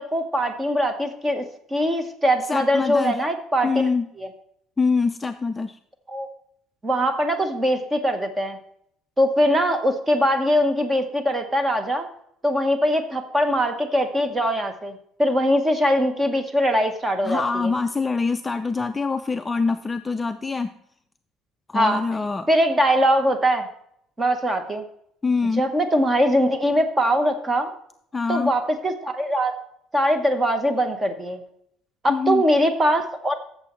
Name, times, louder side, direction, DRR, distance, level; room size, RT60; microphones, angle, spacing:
voice 1, 0.0-1.4 1.7-3.7 4.2-4.3 6.1-6.3 6.8-8.6 9.2-12.1 12.4-17.7 21.7-22.0 22.5-23.7 24.2-24.8 25.6-27.7 28.3-29.6 29.9-31.4 32.0-33.3, equal, 15° right, 7 dB, 1.0 m, -22 dB
voice 2, 2.5-3.2 3.6-4.1 4.8-5.8 17.2-20.7 21.7-22.5 25.2-25.6 28.1-28.5 32.1-32.4, left 4 dB, 15° left, 8 dB, 0.3 m, -24 dB
14.0 x 6.9 x 3.1 m, 0.71 s
cardioid pair, 145°, 0 cm